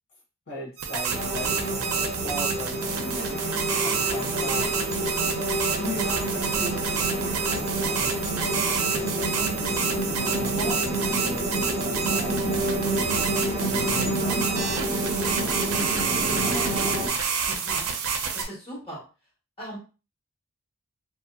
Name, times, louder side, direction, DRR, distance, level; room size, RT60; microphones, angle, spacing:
voice 1, 0.5-3.0 3.8-4.7 5.6-8.1 9.1-12.8 13.6-14.8 16.0-17.2, left 1 dB, 60° left, -3 dB, 1.3 m, -38 dB
sound 1, 0.8-18.4, right 6 dB, 80° right, 0.5 m, -28 dB
sound 2, 1.1-17.1, right 1 dB, 30° right, 1.0 m, -29 dB
voice 2, 3.0-3.3 10.6-10.7 12.1-12.2 12.6-12.8 17.5-17.9 18.3-19.0 19.6-19.8, right 1 dB, 25° left, -6 dB, 1.5 m, -37 dB
2.8 x 2.7 x 2.3 m, 0.33 s
head